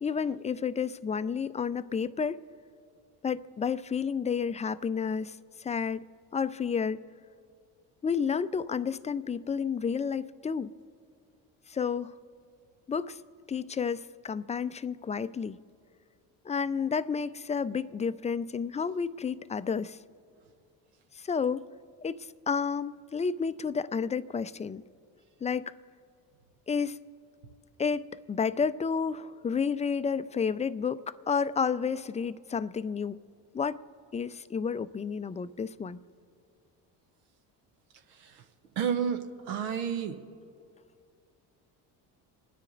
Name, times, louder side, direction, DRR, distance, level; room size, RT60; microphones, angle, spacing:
voice 1, 0.0-2.4 3.2-6.0 6.3-7.0 8.0-10.7 11.7-12.1 12.9-13.2 13.5-15.6 16.4-20.0 21.2-21.7 22.0-22.2 22.5-24.8 25.4-25.7 26.7-27.0 27.8-33.2 33.5-33.8 34.1-36.0, left 6 dB, 15° left, 0.4 m, -31 dB
voice 2, 38.8-40.2, right 7 dB, 85° right, 0.9 m, -30 dB
27.0 x 10.0 x 3.9 m
hypercardioid pair, 65°, 46 cm